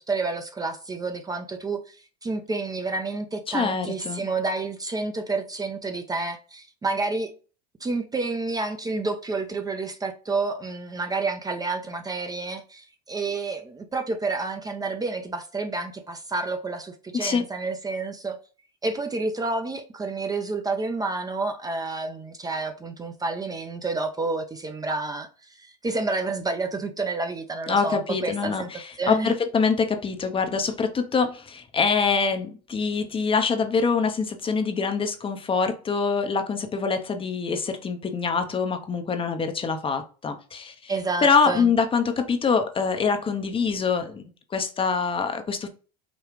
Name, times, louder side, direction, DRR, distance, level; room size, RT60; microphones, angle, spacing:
voice 1, 0.1-7.3 7.8-18.4 18.8-28.7 29.0-29.3 40.9-41.7, right 3 dB, 20° right, 0.6 m, -29 dB
voice 2, 3.5-4.3 17.1-17.4 27.7-40.9 41.2-44.2 44.5-45.7, left 5 dB, 25° left, 0.7 m, -25 dB
5.1 x 2.3 x 3.1 m
hypercardioid pair, 90°, 21 cm